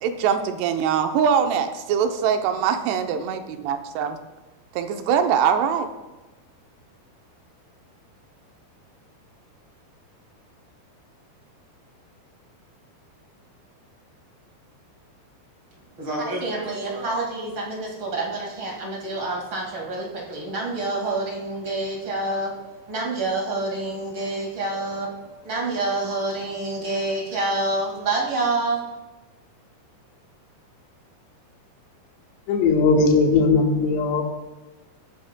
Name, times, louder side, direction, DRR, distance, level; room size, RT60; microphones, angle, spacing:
voice 1, 0.0-4.2 4.7-5.9, right 7 dB, 80° right, 7 dB, 2.8 m, -22 dB
voice 2, 16.0-25.2 25.4-28.9, right 2 dB, 40° right, -2 dB, 1.8 m, -27 dB
voice 3, 32.5-34.2, left 4 dB, 80° left, 1 dB, 3.4 m, -18 dB
20.5 x 9.8 x 2.2 m, 1.1 s
omnidirectional pair, 5.0 m